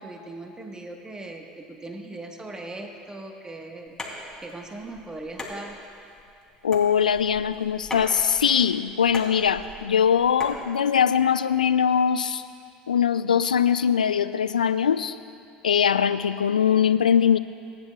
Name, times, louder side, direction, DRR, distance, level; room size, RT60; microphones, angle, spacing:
voice 1, 0.0-4.0 4.4-5.8, right 2 dB, 15° right, 3 dB, 1.4 m, -39 dB
sound 1, 3.9-10.6, left 2 dB, 15° left, 3.0 m, -40 dB
voice 2, 6.6-12.4 12.9-15.2 15.6-17.4, left 8 dB, 90° left, 13 dB, 0.4 m, -21 dB
24.5 x 10.5 x 2.4 m, 2.6 s
hypercardioid pair, 75°, 4 cm